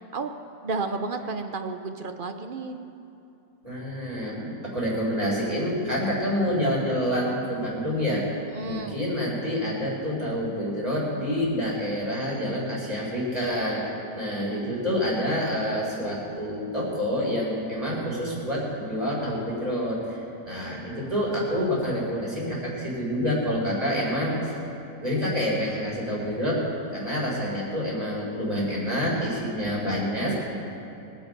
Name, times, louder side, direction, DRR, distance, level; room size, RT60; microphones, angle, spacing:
voice 1, 0.6-2.8 8.5-9.0 20.6-21.1, right 3 dB, 45° right, 7 dB, 0.7 m, -32 dB
voice 2, 3.6-8.2 8.6-20.2 20.4-24.6 25.0-26.6 26.9-30.3, equal, 20° right, -5 dB, 4.4 m, -27 dB
23.5 x 9.1 x 5.3 m, 2.8 s
omnidirectional pair, 1.8 m